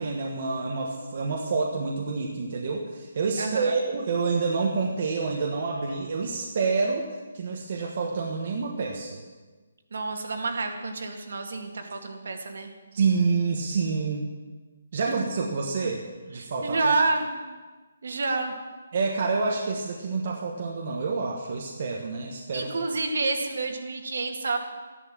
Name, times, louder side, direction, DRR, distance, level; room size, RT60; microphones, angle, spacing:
voice 1, 0.0-7.1 7.3-9.2 12.9-14.3 14.9-16.0 16.3-16.9 18.9-22.7, right 4 dB, 35° right, -1 dB, 1.3 m, -28 dB
voice 2, 3.4-3.8 9.9-12.7 15.0-15.2 15.8-15.9 16.4-17.5 18.0-18.5 22.5-24.6, right 3 dB, 55° right, 4 dB, 2.0 m, -29 dB
13.5 x 11.0 x 7.5 m, 1.3 s
hypercardioid pair, 180°, 0 cm